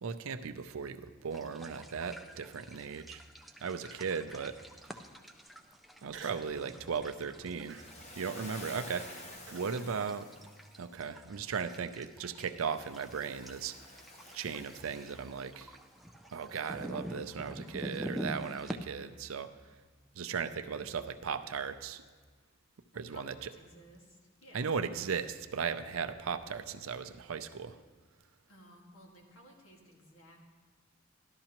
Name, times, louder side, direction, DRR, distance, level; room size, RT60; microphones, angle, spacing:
voice 1, 0.0-3.2 3.6-4.5 6.0-7.8 8.2-10.2 10.8-13.7 14.3-15.8 16.3-19.5 20.1-22.0 22.9-23.5 24.5-27.8, right 6 dB, 80° right, 9 dB, 0.5 m, -37 dB
sound 1, 1.3-18.8, equal, ahead, 0.4 m, -47 dB
Human voice, 3.9-4.3 4.9-5.0 6.1-6.6 7.0-7.3 7.7-9.7, right 5 dB, 60° right, 1.0 m, -51 dB
voice 2, 6.4-6.8 9.7-10.4 20.6-21.2 22.9-24.8 28.5-30.4, equal, 80° left, 0 dB, 1.8 m, -57 dB
Waves surf, 7.6-10.8 12.6-15.7, left 1 dB, 30° left, 1.0 m, -50 dB
13.0 x 11.5 x 2.9 m, 1.4 s
head